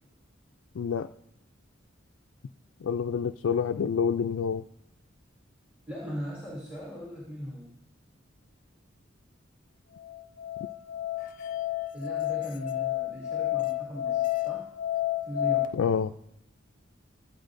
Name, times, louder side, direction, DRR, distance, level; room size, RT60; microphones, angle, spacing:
voice 1, 0.8-1.1 2.8-4.6 15.7-16.1, left 6 dB, 75° left, 6 dB, 0.4 m, -27 dB
voice 2, 5.9-7.7 11.9-14.7 15.2-15.7, equal, 5° right, -5 dB, 2.9 m, -39 dB
Musical instrument, 10.0-15.7, left 14 dB, 45° left, 0.7 m, -30 dB
22.5 x 8.7 x 2.6 m, 0.84 s
head